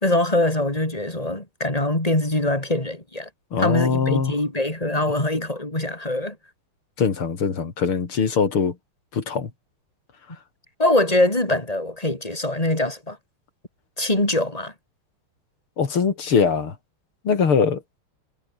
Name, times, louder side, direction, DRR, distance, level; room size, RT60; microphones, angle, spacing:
voice 1, 0.0-3.3 3.6-6.4 10.8-13.2 14.0-14.7, left 1 dB, 15° left, 4.7 m, -23 dB
voice 2, 3.5-4.3 7.0-8.8 9.1-9.5 15.8-16.7 17.3-17.8, left 6 dB, 75° left, 3.6 m, -22 dB
omnidirectional pair, 2.4 m